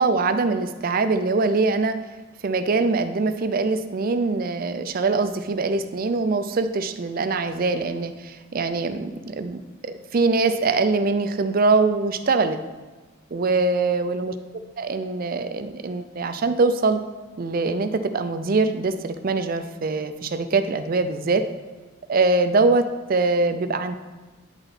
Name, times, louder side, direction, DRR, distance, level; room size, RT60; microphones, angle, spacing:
voice 1, 0.0-2.0 2.4-12.6 13.3-14.3 14.8-17.0 17.4-21.4 22.1-24.0, right 3 dB, 45° right, 9 dB, 0.4 m, -23 dB
9.7 x 3.9 x 4.1 m, 1.3 s
head